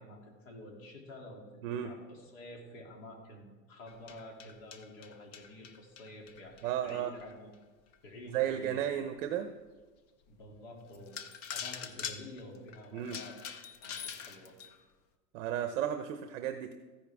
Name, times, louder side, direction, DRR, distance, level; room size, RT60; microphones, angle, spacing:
voice 1, 0.0-7.5 8.0-9.0 10.3-11.2 11.5-13.4 13.8-14.5, left 1 dB, 65° left, 0 dB, 2.9 m, -49 dB
sound 1, 3.9-7.3 7.9-8.0 8.6-8.7 9.2-9.3 10.4-10.5 10.9-14.8, left 7 dB, 30° left, 0.4 m, -44 dB
voice 2, 6.6-7.1 8.3-9.5 12.9-13.2 15.3-16.7, right 10 dB, 60° right, 7 dB, 0.8 m, -33 dB
14.5 x 10.0 x 3.5 m, 1.4 s
supercardioid pair, 175°, 42 cm